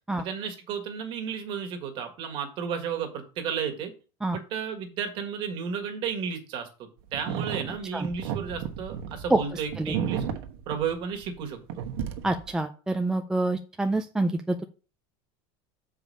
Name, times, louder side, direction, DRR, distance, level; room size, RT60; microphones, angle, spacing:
voice 1, 0.2-3.9 4.3-6.7 7.1-10.2 10.7-11.8, right 7 dB, 40° right, 6 dB, 1.7 m, -33 dB
sound 1, 7.1-11.4 11.7-12.5, right 8 dB, 75° right, 1.2 m, -33 dB
voice 2, 9.3-10.0 12.2-14.6, right 2 dB, 5° right, 5 dB, 0.3 m, -27 dB
6.9 x 4.9 x 5.4 m, 0.35 s
supercardioid pair, 165°, 13 cm